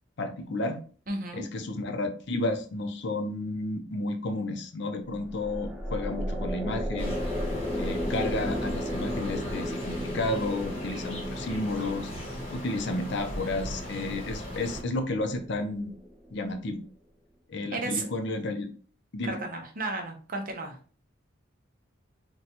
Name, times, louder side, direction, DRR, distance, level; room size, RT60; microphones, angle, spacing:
voice 1, 0.2-0.8 1.3-7.2 7.8-12.1 12.5-15.9 16.3-16.8 17.5-18.7 19.1-19.4, left 2 dB, 60° left, 6 dB, 0.5 m, -32 dB
voice 2, 1.1-1.4 17.7-18.1 19.2-20.8, right 2 dB, 45° right, 3 dB, 0.7 m, -33 dB
sound 1, 5.1-16.5, equal, ahead, 0.4 m, -35 dB
sound 2, 7.0-14.8, equal, 30° left, 1.0 m, -38 dB
4.0 x 2.2 x 2.8 m, 0.41 s
head